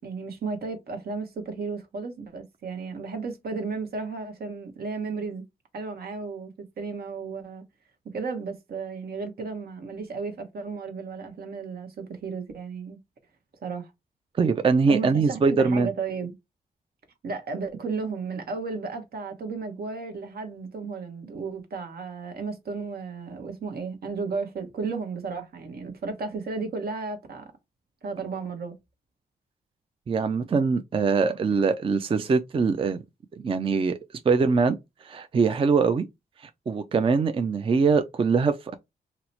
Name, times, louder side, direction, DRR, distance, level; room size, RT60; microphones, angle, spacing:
voice 1, 0.0-5.4 5.7-6.5 6.8-7.6 8.1-13.0 13.6-13.9 14.9-16.3 17.2-27.5 28.0-28.7, right 4 dB, 70° right, 1.0 m, -34 dB
voice 2, 14.4-15.9 30.1-33.0 33.4-34.0 34.3-36.1 36.4-38.8, right 4 dB, 35° right, 0.4 m, -23 dB
2.9 x 2.0 x 4.0 m
cardioid pair, 75°, 17 cm